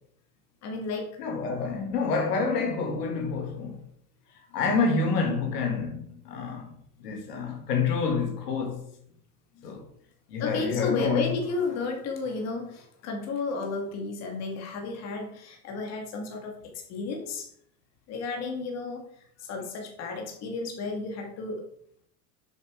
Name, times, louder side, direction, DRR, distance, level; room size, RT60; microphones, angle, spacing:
voice 1, 0.6-1.1 9.6-9.7 10.4-17.5 18.1-19.0 19.4-21.6, left 3 dB, 35° left, 1.9 m, -33 dB
voice 2, 1.2-3.9 4.5-6.7 7.0-8.8 9.6-9.9 10.3-11.3, left 4 dB, 80° left, 2.0 m, -28 dB
7.0 x 5.6 x 4.9 m
supercardioid pair, 150°, 47 cm